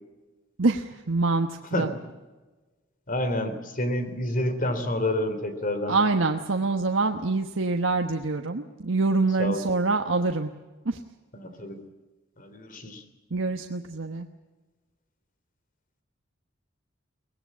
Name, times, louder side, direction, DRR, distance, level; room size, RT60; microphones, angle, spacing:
voice 1, 0.6-1.9 5.9-10.5 10.8-11.0 13.3-14.3, right 3 dB, 80° right, 5 dB, 1.2 m, -25 dB
voice 2, 3.1-6.0 9.4-9.7 11.4-11.8 12.4-13.0, left 1 dB, 45° left, 10 dB, 3.3 m, -28 dB
23.5 x 19.0 x 8.5 m, 1.2 s
head